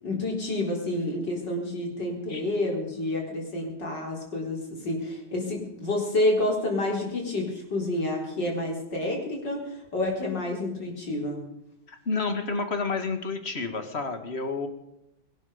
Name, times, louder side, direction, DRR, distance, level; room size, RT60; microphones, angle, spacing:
voice 1, 0.0-11.5, left 1 dB, 65° left, 0 dB, 4.9 m, -29 dB
voice 2, 11.9-14.7, left 4 dB, 35° left, 7 dB, 2.0 m, -30 dB
22.0 x 12.0 x 5.2 m, 0.84 s
omnidirectional pair, 2.1 m